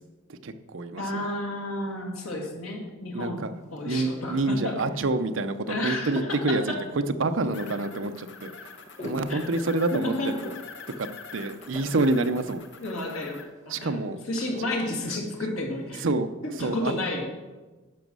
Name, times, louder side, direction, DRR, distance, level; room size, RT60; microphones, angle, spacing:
voice 1, 0.3-1.3 3.1-3.5 3.8-8.7 9.0-10.5 11.0-12.6 13.7-14.2 16.0-16.3 16.6-16.9, right 2 dB, 70° right, 9 dB, 0.6 m, -27 dB
voice 2, 1.0-4.8 5.7-6.8 9.3-9.4 9.9-10.4 12.8-13.4 13.7-14.0 14.3-16.0 16.6-17.2, left 1 dB, 85° left, 0 dB, 2.3 m, -31 dB
sound 1, 3.3-16.2, left 1 dB, 35° left, 1.3 m, -48 dB
sound 2, 7.5-13.4, left 5 dB, 55° left, 0.9 m, -45 dB
10.5 x 6.2 x 6.2 m, 1.2 s
head